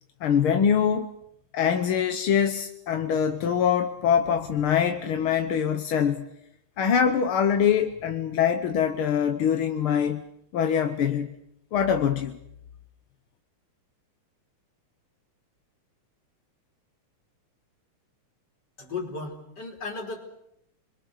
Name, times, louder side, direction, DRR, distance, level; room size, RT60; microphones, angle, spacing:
voice 1, 0.2-1.1 1.5-6.2 6.8-10.2 10.5-11.3 11.7-12.4, left 8 dB, 60° left, 7 dB, 1.5 m, -24 dB
voice 2, 18.8-20.2, left 4 dB, 35° left, 3 dB, 4.2 m, -35 dB
29.0 x 22.5 x 6.6 m, 0.78 s
omnidirectional pair, 3.5 m